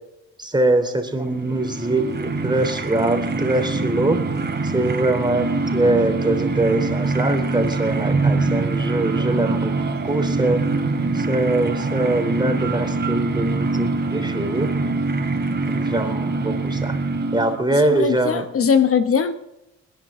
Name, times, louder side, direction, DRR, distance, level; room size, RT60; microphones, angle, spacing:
voice 1, 0.4-4.2 4.6-9.7 10.0-10.6 11.1-14.7 15.7-17.0 17.3-18.4, right 2 dB, 15° right, 5 dB, 3.3 m, -23 dB
sound 1, 1.1-17.8, right 3 dB, 35° right, 3.0 m, -24 dB
voice 2, 17.7-19.3, left 7 dB, 50° left, 10 dB, 1.0 m, -20 dB
27.0 x 10.5 x 3.7 m, 0.89 s
cardioid pair, 90°, 30 cm